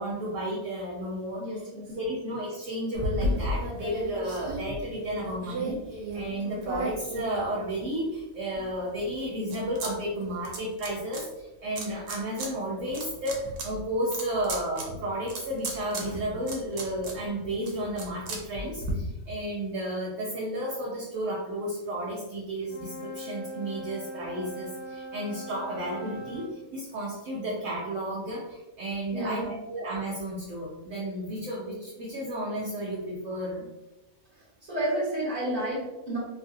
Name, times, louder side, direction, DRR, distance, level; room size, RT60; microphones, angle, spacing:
voice 1, 0.0-1.6 2.0-33.6, right 1 dB, 65° right, -4 dB, 0.9 m, -33 dB
voice 2, 1.4-1.8 29.1-29.6 34.7-36.2, right 1 dB, 25° right, -7 dB, 1.3 m, -31 dB
sound 1, 2.9-8.0 8.5-9.9 10.2-11.2 11.8-12.5 12.8-18.9, right 1 dB, 85° right, 1.2 m, -35 dB
Wind instrument woodwind instrument, 22.6-26.6, right 1 dB, 85° left, 1.2 m, -40 dB
3.1 x 2.5 x 2.5 m, 1.0 s
omnidirectional pair, 1.6 m